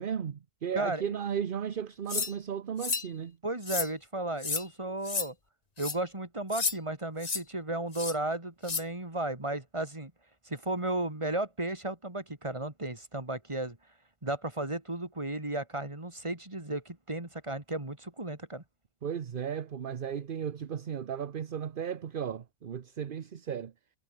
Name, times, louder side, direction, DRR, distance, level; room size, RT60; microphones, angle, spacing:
voice 1, 0.0-3.4 19.0-23.7, right 8 dB, 55° right, 1.0 m, -35 dB
voice 2, 0.7-1.2 3.4-5.3 5.8-10.1 10.5-13.8 14.2-18.6, right 2 dB, 25° right, 2.9 m, -34 dB
sound 1, 2.1-2.3 2.8-3.1 3.6-3.9 4.4-4.6 5.1-5.3 5.8-6.0 6.5-6.8 7.2-7.4 7.9-8.1 8.6-8.8, left 5 dB, 40° left, 1.2 m, -31 dB
omnidirectional pair, 1.1 m